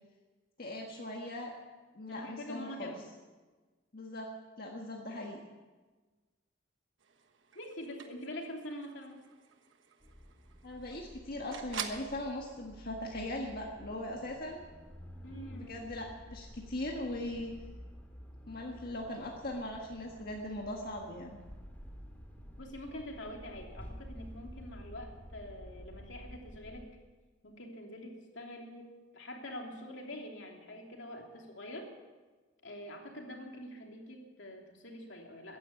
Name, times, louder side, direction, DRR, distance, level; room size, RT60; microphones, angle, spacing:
voice 1, 0.6-1.5 1.9-2.9 3.9-4.3 4.6-5.4 10.6-14.7 15.5-17.5 18.5-21.4, left 1 dB, 55° left, 0 dB, 1.6 m, -40 dB
voice 2, 2.1-3.0 7.5-9.3 15.2-15.8 22.6-26.9 27.4-31.9 32.6-35.6, left 1 dB, 75° left, 1 dB, 2.9 m, -45 dB
sound 1, 7.0-12.1, right 8 dB, 80° right, 1.2 m, -47 dB
sound 2, 10.0-26.9, equal, 10° left, 2.0 m, -51 dB
14.5 x 10.5 x 8.3 m, 1.3 s
head